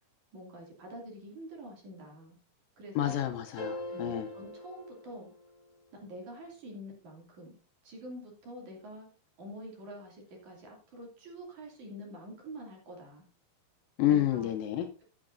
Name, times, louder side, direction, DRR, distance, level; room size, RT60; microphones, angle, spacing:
voice 1, 0.3-2.4 2.8-3.2 3.9-5.3 5.9-7.5 7.8-9.1 9.4-13.3 14.1-14.5, equal, 50° right, 3.8 m, -46 dB
voice 2, 3.0-4.3 14.0-14.9, left 12 dB, 75° left, 2.2 m, -29 dB
sound 1, 3.6-5.8, left 2 dB, 25° left, 4.5 m, -42 dB
15.0 x 8.7 x 2.6 m
omnidirectional pair, 4.5 m